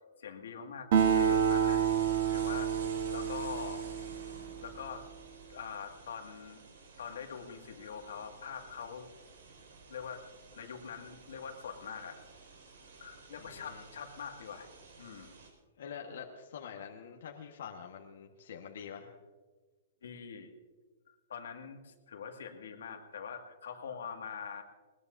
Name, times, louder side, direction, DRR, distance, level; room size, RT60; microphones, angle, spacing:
voice 1, 0.2-1.9 2.3-2.7 3.1-3.9 4.6-5.1 5.5-6.6 7.0-9.1 9.9-10.2 10.5-12.2 13.0-14.7 15.0-15.3 20.0-20.5 21.3-24.6, left 6 dB, 85° left, 3 dB, 2.0 m, -43 dB
Acoustic guitar, 0.9-4.7, right 8 dB, 40° right, 1.3 m, -29 dB
sound 1, 0.9-15.5, right 4 dB, 80° right, 5.2 m, -52 dB
voice 2, 13.4-13.8 15.8-19.1, left 7 dB, 60° left, 1 dB, 1.4 m, -46 dB
21.0 x 20.0 x 2.7 m, 1.4 s
hypercardioid pair, 175°, 0 cm